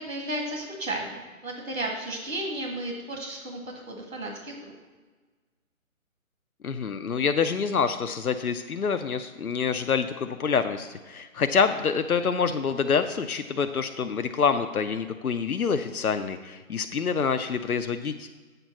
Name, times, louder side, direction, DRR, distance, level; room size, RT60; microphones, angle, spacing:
voice 1, 0.0-3.6 3.9-4.5, right 1 dB, 65° right, 0 dB, 1.8 m, -33 dB
voice 2, 6.6-18.3, left 6 dB, 85° left, 8 dB, 0.6 m, -26 dB
7.9 x 4.5 x 7.2 m, 1.3 s
figure-of-eight pair, 145°, 42 cm